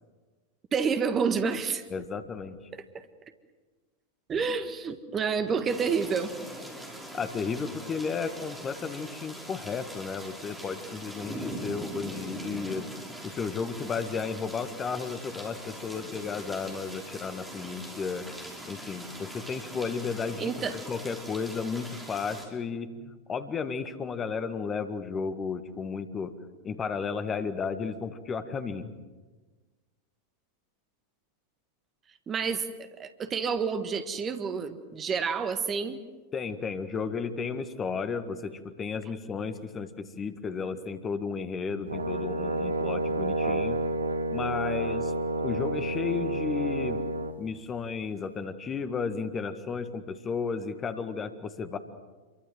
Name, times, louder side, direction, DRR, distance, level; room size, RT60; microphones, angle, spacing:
voice 1, 0.7-1.8 2.7-3.0 4.3-6.3 20.4-20.8 32.3-36.0, right 5 dB, 25° right, 9 dB, 1.6 m, -29 dB
voice 2, 1.9-2.6 7.1-12.9 13.2-18.3 18.7-26.4 26.6-28.9 36.3-43.9 44.3-45.1 45.4-47.1 47.4-51.8, left 5 dB, 20° left, 9 dB, 1.8 m, -33 dB
sound 1, 5.7-22.4, right 1 dB, 5° right, 5.5 m, -42 dB
Brass instrument, 41.9-47.4, right 2 dB, 80° right, 1.3 m, -30 dB
28.0 x 23.0 x 7.7 m, 1.3 s
figure-of-eight pair, 90°, 0 cm